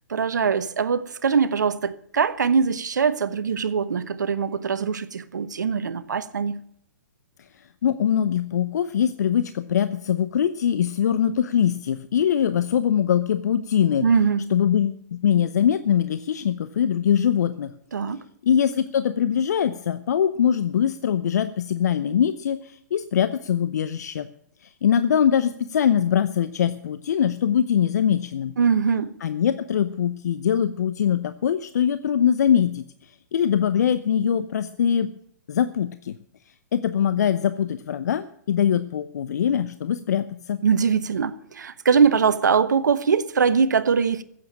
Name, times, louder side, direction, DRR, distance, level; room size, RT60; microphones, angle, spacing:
voice 1, 0.1-6.6 14.0-14.5 17.9-18.2 28.6-29.2 40.6-44.2, right 6 dB, 80° right, 1.0 m, -22 dB
voice 2, 7.8-14.0 14.5-17.7 18.4-24.3 24.6-28.5 29.2-32.8 33.3-35.1 35.5-36.2 36.7-40.6, left 9 dB, 65° left, 0.7 m, -22 dB
15.0 x 7.8 x 8.7 m
hypercardioid pair, 125°, 10 cm